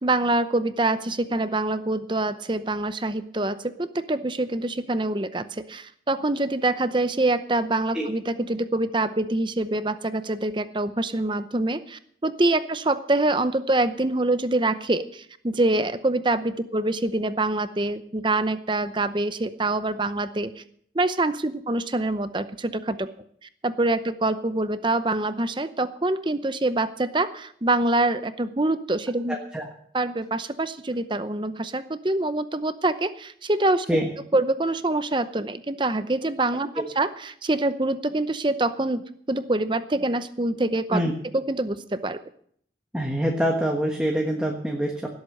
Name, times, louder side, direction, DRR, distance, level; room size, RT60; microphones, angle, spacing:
voice 1, 0.0-20.6 20.9-23.1 23.6-29.4 29.9-33.9 34.3-41.0 41.3-42.2, right 2 dB, 25° right, 12 dB, 0.7 m, -25 dB
voice 2, 29.3-29.6 33.9-34.1 36.8-36.9 40.9-41.1 42.9-45.1, equal, 5° right, 0 dB, 1.4 m, -25 dB
18.0 x 8.0 x 6.6 m, 0.64 s
head